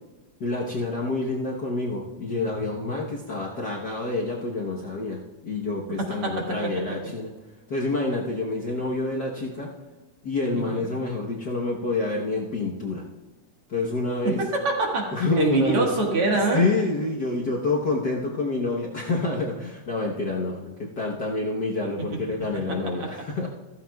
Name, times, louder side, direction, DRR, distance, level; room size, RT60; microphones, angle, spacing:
voice 1, 0.4-7.3 7.7-9.7 10.2-13.0 13.7-14.4 15.1-15.9 16.5-23.5, left 3 dB, 65° left, -4 dB, 1.0 m, -27 dB
voice 2, 10.5-10.9 14.2-16.7 22.1-22.2 22.5-22.8, right 3 dB, 55° right, -1 dB, 2.4 m, -25 dB
15.0 x 13.5 x 2.3 m, 1.2 s
omnidirectional pair, 3.4 m